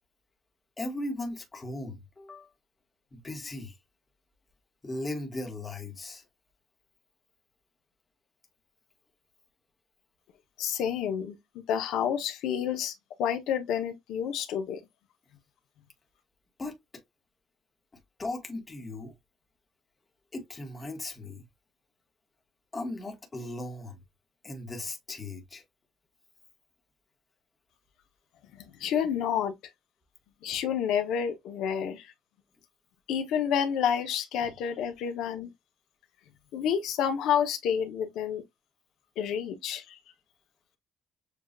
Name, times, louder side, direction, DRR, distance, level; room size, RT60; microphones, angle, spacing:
voice 1, 0.8-2.5 3.1-3.8 4.8-6.2 16.6-16.8 18.2-19.1 20.3-21.4 22.7-24.0 24.4-25.6, left 2 dB, 15° left, 1.1 m, -37 dB
voice 2, 10.6-12.9 13.2-14.8 28.5-29.5 30.4-32.1 33.1-35.5 36.5-38.4 39.2-40.0, left 8 dB, 85° left, 0.9 m, -29 dB
7.1 x 2.4 x 2.5 m
cardioid pair, 180°, 0 cm